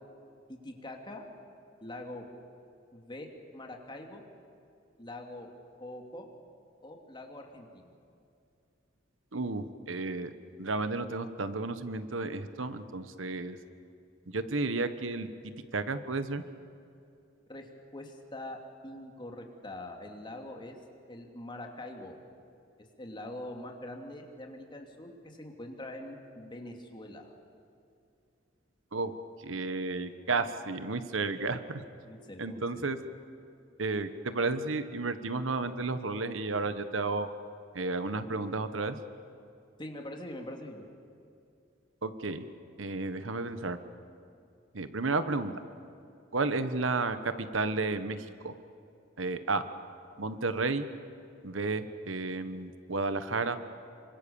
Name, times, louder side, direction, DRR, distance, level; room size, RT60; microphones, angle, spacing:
voice 1, 0.5-1.2 1.8-2.2 2.9-4.2 5.0-5.5 5.8-6.3 6.8-7.9 17.5-20.8 21.1-22.2 23.0-27.3 32.0-32.9 39.8-40.8, left 1 dB, 25° left, 2 dB, 2.8 m, -43 dB
voice 2, 9.3-10.3 10.6-13.6 14.3-16.4 28.9-29.1 29.4-31.8 32.4-33.0 33.8-37.3 37.7-39.0 42.0-42.4 42.8-43.8 44.7-45.5 46.3-48.2 48.4-48.5 49.2-49.6 50.2-50.9 51.4-53.6, right 3 dB, 90° right, 11 dB, 1.3 m, -32 dB
27.5 x 24.5 x 7.2 m, 2.5 s
head